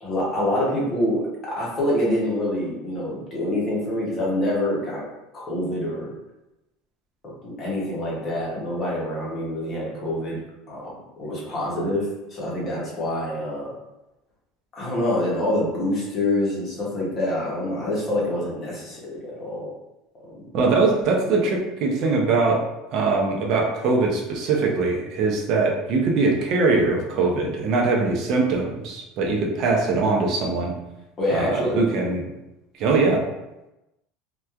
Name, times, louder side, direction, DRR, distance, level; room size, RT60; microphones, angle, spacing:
voice 1, 0.0-5.0 5.3-6.1 7.2-10.4 10.7-13.7 14.7-19.7 20.2-20.5 31.2-31.8, left 1 dB, 25° left, -5 dB, 0.7 m, -26 dB
voice 2, 20.5-22.6 22.9-30.7 31.3-32.2 32.8-33.2, right 3 dB, 40° right, 0 dB, 0.5 m, -22 dB
2.9 x 2.2 x 2.3 m, 0.97 s
cardioid pair, 170°, 0 cm